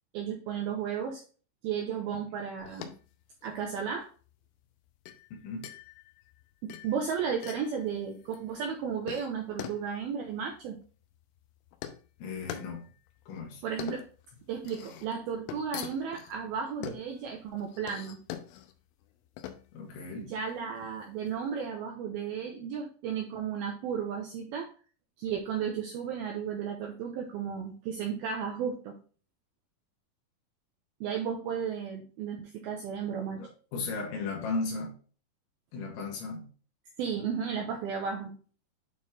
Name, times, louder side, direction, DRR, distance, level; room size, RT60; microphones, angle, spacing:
voice 1, 0.1-1.2 1.6-2.9 3.4-4.1 6.6-10.8 13.6-14.0 14.5-18.2 20.2-24.7 25.2-29.0 31.0-33.4 37.0-38.3, right 7 dB, 85° right, 2.1 m, -34 dB
sound 1, 2.6-21.4, left 11 dB, 90° left, 3.1 m, -45 dB
voice 2, 12.2-12.8 13.3-13.6 19.7-20.3 33.4-35.0 35.7-36.5, left 3 dB, 75° left, 4.2 m, -36 dB
9.2 x 4.3 x 3.2 m
omnidirectional pair, 5.5 m